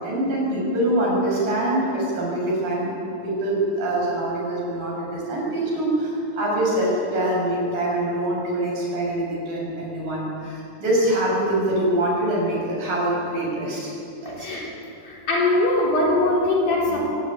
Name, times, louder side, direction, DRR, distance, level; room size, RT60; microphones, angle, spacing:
voice 1, 0.0-13.9 14.2-14.6, right 1 dB, 70° right, -3 dB, 8.6 m, -24 dB
voice 2, 14.3-17.1, left 2 dB, 80° left, -3 dB, 5.9 m, -22 dB
23.5 x 18.5 x 10.0 m, 2.7 s
omnidirectional pair, 4.1 m